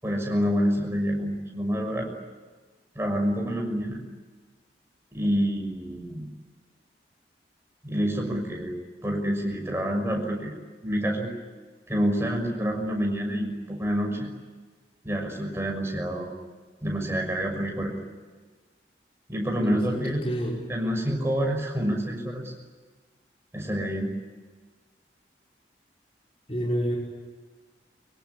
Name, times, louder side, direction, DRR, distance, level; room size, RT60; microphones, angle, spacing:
voice 1, 0.0-2.1 2.9-4.0 5.1-6.3 7.8-8.7 9.0-10.5 10.8-11.3 11.9-14.3 15.0-16.4 16.8-17.9 19.3-20.2 20.7-22.5 23.5-24.1, equal, 15° right, 2 dB, 6.3 m, -27 dB
voice 2, 19.6-20.7 26.5-27.0, equal, 35° left, -2 dB, 5.3 m, -29 dB
24.5 x 23.5 x 10.0 m, 1.4 s
head